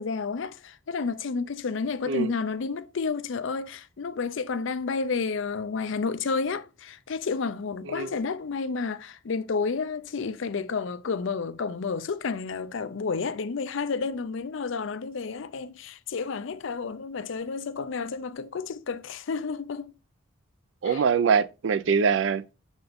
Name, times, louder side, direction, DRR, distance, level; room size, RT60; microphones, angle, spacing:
voice 1, 0.0-19.9 20.8-21.0, left 4 dB, 65° left, 0.4 m, -31 dB
voice 2, 7.9-8.2 20.8-22.4, right 6 dB, 60° right, 0.4 m, -23 dB
6.8 x 4.0 x 3.5 m
head